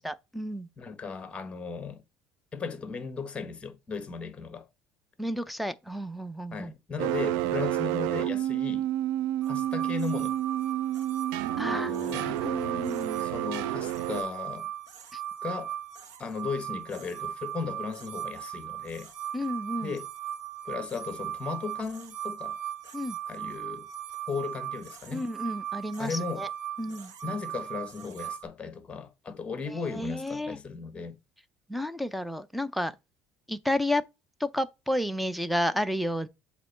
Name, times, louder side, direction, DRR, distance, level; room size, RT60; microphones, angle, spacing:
voice 1, 0.0-0.7 5.2-6.7 11.6-13.3 15.1-15.2 19.3-19.9 22.9-23.2 25.1-26.5 26.8-27.1 29.7-30.6 31.7-33.0 33.5-34.0 34.4-36.3, left 1 dB, ahead, 0.5 m, -31 dB
voice 2, 0.8-2.0 2.5-4.7 6.5-8.9 9.5-10.4 11.6-12.4 13.2-14.7 15.4-15.7 16.2-19.1 19.8-20.1 20.6-22.6 23.3-23.9 24.3-25.2 26.0-26.4 27.2-31.2, left 5 dB, 15° left, 1.2 m, -36 dB
sound 1, 7.0-14.2, right 13 dB, 75° right, 0.5 m, -30 dB
sound 2, 9.4-28.4, right 11 dB, 60° right, 1.2 m, -38 dB
7.4 x 3.0 x 5.7 m
cardioid pair, 145°, 7 cm